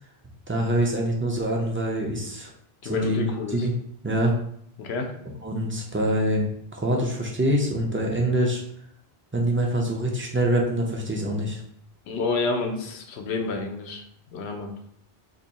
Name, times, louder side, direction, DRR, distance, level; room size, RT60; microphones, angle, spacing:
voice 1, 0.5-2.5 2.8-3.7 4.0-4.3 5.4-8.6 9.3-11.6, right 1 dB, 20° right, -1 dB, 0.3 m, -25 dB
voice 2, 2.8-3.6 4.8-5.1 12.1-14.0 14.3-14.7, left 4 dB, 85° left, 4 dB, 0.9 m, -29 dB
2.7 x 2.6 x 4.0 m, 0.69 s
omnidirectional pair, 1.1 m